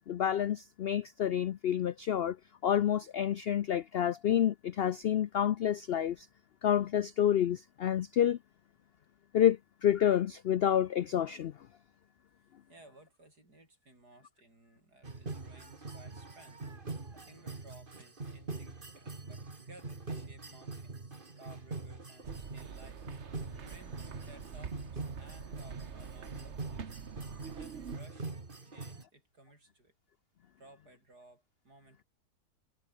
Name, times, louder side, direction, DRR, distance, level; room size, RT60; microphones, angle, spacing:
voice 1, 0.1-2.4 2.6-6.3 6.6-8.4 9.3-11.5, left 10 dB, 85° left, 0.5 m, -29 dB
voice 2, 12.7-16.6 16.9-23.1 23.7-27.0 27.4-28.3 28.6-29.9 30.6-32.1, right 2 dB, 85° right, 8.5 m, -58 dB
sound 1, 15.0-29.0, right 3 dB, 35° right, 2.4 m, -43 dB
sound 2, 22.2-28.0, right 7 dB, 50° right, 1.4 m, -46 dB
omnidirectional pair, 1.7 m